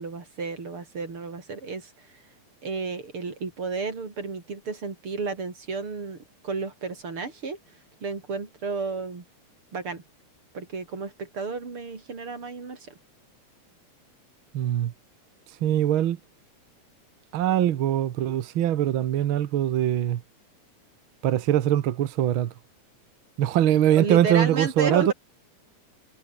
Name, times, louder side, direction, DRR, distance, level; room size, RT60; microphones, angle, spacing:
voice 1, 0.0-2.2 2.6-6.2 6.4-7.6 8.0-9.2 9.7-10.0 10.5-12.9 23.9-25.1, right 4 dB, 45° right, 5.0 m, -32 dB
voice 2, 14.5-14.9 15.6-16.2 17.3-20.2 21.2-22.5 23.4-25.1, right 11 dB, 65° right, 1.3 m, -22 dB
omnidirectional pair, 3.5 m